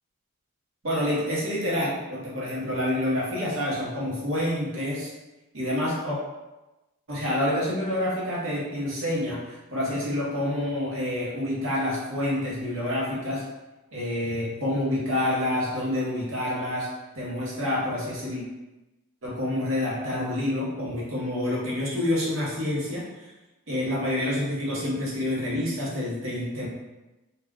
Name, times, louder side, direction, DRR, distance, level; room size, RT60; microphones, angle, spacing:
voice 1, 0.8-5.1 5.5-6.2 7.1-13.4 13.9-16.9 17.1-18.4 19.2-23.0 23.7-26.7, left 1 dB, 60° right, -5 dB, 0.8 m, -28 dB
2.3 x 2.1 x 3.5 m, 1.1 s
head